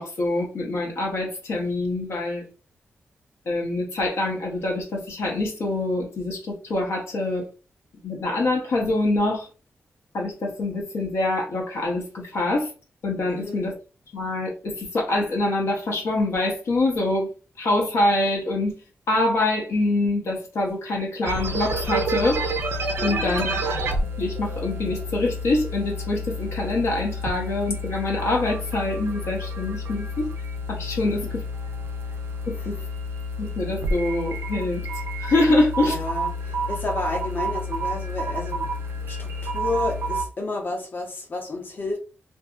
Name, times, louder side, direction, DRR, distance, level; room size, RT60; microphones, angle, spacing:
voice 1, 0.0-2.4 3.5-7.4 8.0-9.5 10.1-12.7 13.0-13.7 14.1-17.3 17.6-18.7 19.1-22.5 23.0-23.6 24.2-30.3 30.7-31.4 32.5-32.8 33.4-34.9 35.2-36.0, left 2 dB, 85° left, -1 dB, 0.8 m, -25 dB
voice 2, 13.3-13.6 23.0-23.4 31.0-31.3 35.8-38.7 39.1-42.0, left 3 dB, 55° left, 1 dB, 0.8 m, -31 dB
sound 1, 21.3-40.2, equal, 90° right, 0.5 m, -29 dB
2.7 x 2.6 x 2.3 m, 0.34 s
wide cardioid pair, 115°, 4 cm